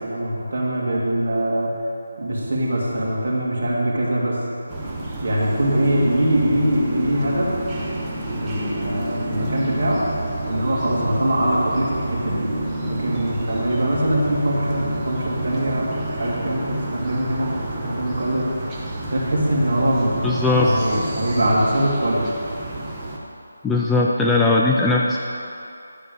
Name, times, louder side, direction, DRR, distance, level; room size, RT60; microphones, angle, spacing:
voice 1, 0.0-1.7 2.2-4.4 5.2-7.5 8.4-10.0 10.4-12.5 12.9-17.6 17.8-18.5 19.1-22.2, right 1 dB, 50° right, -5 dB, 2.6 m, -22 dB
sound 1, 4.7-23.2, right 1 dB, 15° right, 0.9 m, -29 dB
voice 2, 20.2-20.7 23.6-25.2, left 3 dB, 5° left, -3 dB, 0.3 m, -18 dB
11.0 x 5.2 x 6.9 m, 2.5 s
figure-of-eight pair, 170°, 0 cm